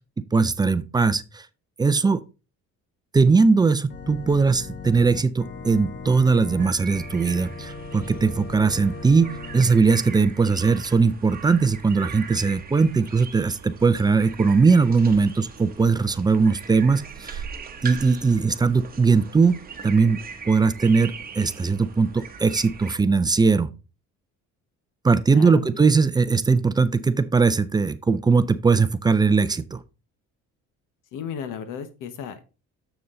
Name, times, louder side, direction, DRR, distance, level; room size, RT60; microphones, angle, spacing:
voice 1, 0.3-1.5 1.8-2.2 3.1-17.4 17.8-19.6 19.8-20.2 20.5-23.7 25.0-29.8, right 4 dB, 15° right, 0.3 m, -20 dB
Organ, 3.9-9.7, left 4 dB, 35° left, 0.7 m, -38 dB
sound 1, 6.6-23.0, right 6 dB, 30° right, 1.0 m, -40 dB
voice 2, 25.3-25.8 31.1-32.4, left 7 dB, 85° left, 1.2 m, -34 dB
6.9 x 6.7 x 3.8 m
cardioid pair, 150°, 31 cm